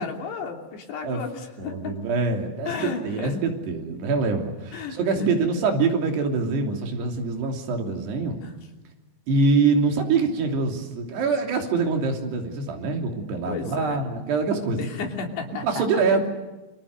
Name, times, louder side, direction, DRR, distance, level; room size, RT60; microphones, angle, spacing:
voice 1, 0.0-2.0 2.7-3.4 4.7-5.3 8.4-8.5 13.5-14.0 14.8-16.2, left 5 dB, 70° left, 3 dB, 5.1 m, -33 dB
voice 2, 1.6-8.4 9.3-14.8 15.6-16.3, right 4 dB, 65° right, 3 dB, 5.0 m, -24 dB
29.5 x 24.5 x 6.8 m, 1.1 s
omnidirectional pair, 5.2 m